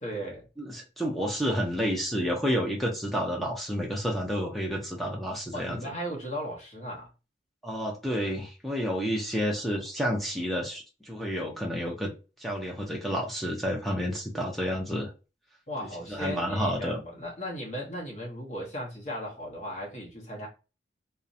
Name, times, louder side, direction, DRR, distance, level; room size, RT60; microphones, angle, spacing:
voice 1, 0.0-0.5 5.5-7.1 15.7-20.5, equal, 40° left, 0.7 m, -36 dB
voice 2, 0.6-5.8 7.6-12.1 12.4-15.1 16.1-17.0, equal, ahead, 0.4 m, -30 dB
2.4 x 2.0 x 2.6 m
head